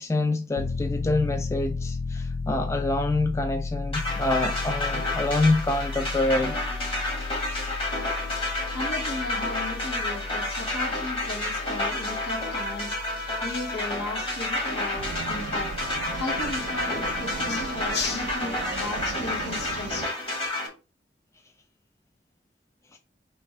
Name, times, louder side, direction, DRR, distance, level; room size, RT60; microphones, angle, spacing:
voice 1, 0.0-6.6 22.9-23.0, left 2 dB, 15° left, 0.3 m, -26 dB
Piano, 0.6-17.2, left 4 dB, 90° left, 0.4 m, -35 dB
sound 1, 3.9-20.7, left 2 dB, 30° left, 1.4 m, -30 dB
voice 2, 8.7-15.7 16.1-20.1, left 3 dB, 70° left, 1.0 m, -35 dB
sound 2, 15.0-20.1, right 6 dB, 80° right, 0.3 m, -37 dB
4.5 x 3.4 x 3.1 m
head